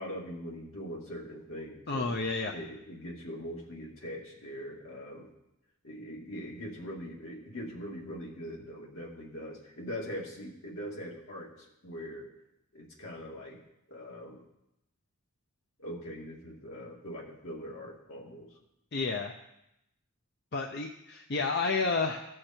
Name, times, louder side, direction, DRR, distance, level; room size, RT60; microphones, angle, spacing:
voice 1, 0.0-2.2 2.5-5.3 5.8-12.3 12.7-13.6 13.9-14.4 15.8-18.5, equal, 75° left, -2 dB, 2.4 m, -42 dB
voice 2, 1.9-2.5 18.9-19.3 20.5-22.2, left 4 dB, 50° left, 3 dB, 0.6 m, -30 dB
15.5 x 6.6 x 4.4 m, 0.85 s
head